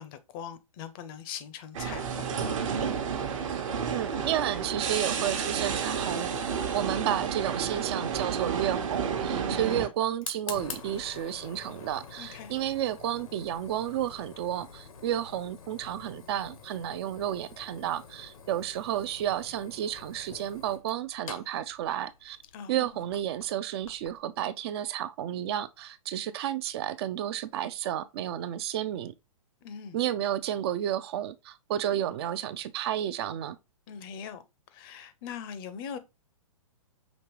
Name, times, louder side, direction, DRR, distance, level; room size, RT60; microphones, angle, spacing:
voice 1, 0.0-2.6 12.2-12.5 22.5-23.0 29.6-30.0 33.9-34.4 34.7-36.0, left 7 dB, 40° left, 0.6 m, -41 dB
sound 1, 1.7-9.9, right 6 dB, 65° right, 1.0 m, -31 dB
voice 2, 3.9-6.3 6.7-22.4 22.7-29.1 29.9-33.6, right 11 dB, 45° right, 0.4 m, -32 dB
Fire, 8.5-24.2, left 6 dB, 75° left, 0.9 m, -47 dB
5.2 x 2.9 x 3.0 m
hypercardioid pair, 120°, 18 cm